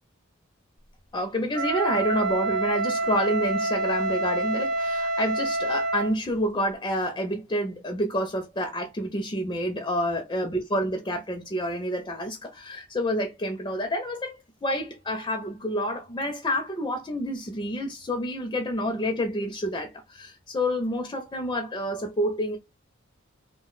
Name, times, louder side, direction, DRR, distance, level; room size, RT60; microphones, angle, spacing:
voice 1, 1.1-22.6, equal, 20° left, 0.4 m, -28 dB
Wind instrument woodwind instrument, 1.5-6.2, right 2 dB, 40° right, 0.8 m, -27 dB
2.3 x 2.1 x 3.8 m
head